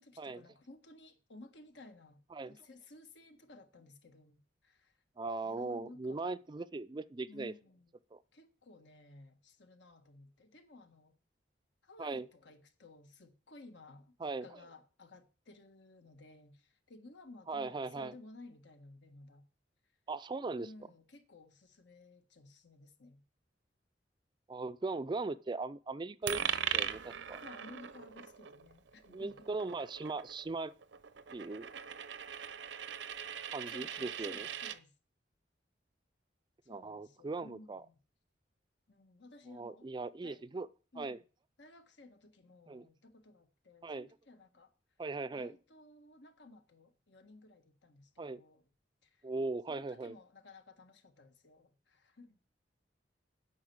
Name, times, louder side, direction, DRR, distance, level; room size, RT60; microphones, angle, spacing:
voice 1, 0.0-2.2 2.5-4.9 5.4-6.4 7.3-7.9 8.3-11.2 11.8-19.5 20.6-23.2 27.4-29.5 33.7-34.9 36.6-37.9 38.9-39.9 40.2-40.4 40.9-41.2 41.6-44.7 45.3-48.7 49.0-49.2 49.7-52.4, left 2 dB, 80° left, 1.5 m, -56 dB
voice 2, 5.2-7.5 8.1-8.2 12.0-12.3 14.2-14.5 17.5-18.1 20.1-20.7 24.5-27.4 29.1-30.7 31.3-31.7 33.5-34.5 36.7-37.8 39.5-40.7 41.0-41.2 42.7-42.9 43.8-44.1 45.0-45.5 48.2-48.4 49.2-50.2, right 3 dB, 25° right, 0.4 m, -39 dB
Coin (dropping), 26.3-34.8, right 9 dB, 90° right, 0.7 m, -40 dB
8.6 x 5.7 x 7.8 m
head